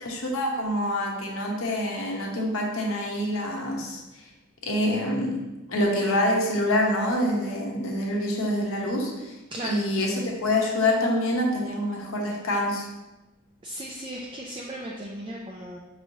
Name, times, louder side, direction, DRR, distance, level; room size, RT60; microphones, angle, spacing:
voice 1, 0.0-4.0 4.6-5.4 5.7-9.3 9.6-12.9, left 1 dB, 70° left, 0 dB, 0.8 m, -26 dB
voice 2, 9.5-9.8 13.6-15.8, right 1 dB, 25° right, -3 dB, 0.3 m, -36 dB
5.7 x 3.0 x 2.7 m, 1.1 s
head